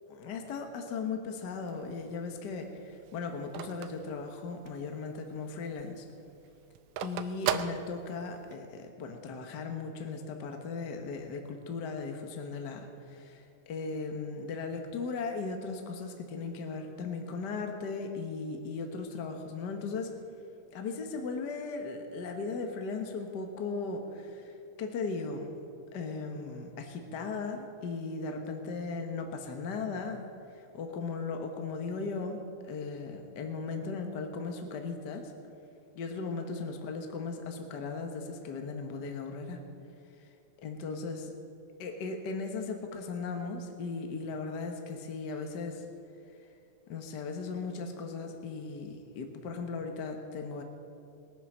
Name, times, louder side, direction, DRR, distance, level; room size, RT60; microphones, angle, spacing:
voice 1, 0.1-6.0 7.0-20.1 20.7-24.4 24.8-25.5 25.9-30.3 30.7-35.3 35.9-39.6 40.6-41.2 41.8-45.8 46.9-50.6, left 4 dB, 70° left, 4 dB, 1.0 m, -37 dB
Telephone, 1.5-4.9 5.3-5.4 5.7-8.5, right 11 dB, 90° right, 2.2 m, -37 dB
20.0 x 9.9 x 6.1 m, 2.5 s
omnidirectional pair, 3.6 m